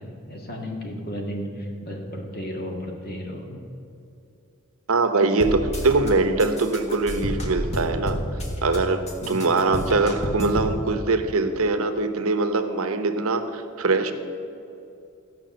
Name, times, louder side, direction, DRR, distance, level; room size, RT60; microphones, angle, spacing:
voice 1, 0.0-3.6 9.2-9.4, equal, 45° left, 1 dB, 1.9 m, -34 dB
voice 2, 4.9-8.2 8.6-9.0 9.3-14.1, right 3 dB, 80° right, 9 dB, 0.9 m, -22 dB
sound 1, 5.4-6.1 6.4-8.8 9.1-10.7, equal, 30° left, 1.5 m, -30 dB
14.0 x 5.9 x 7.8 m, 2.7 s
head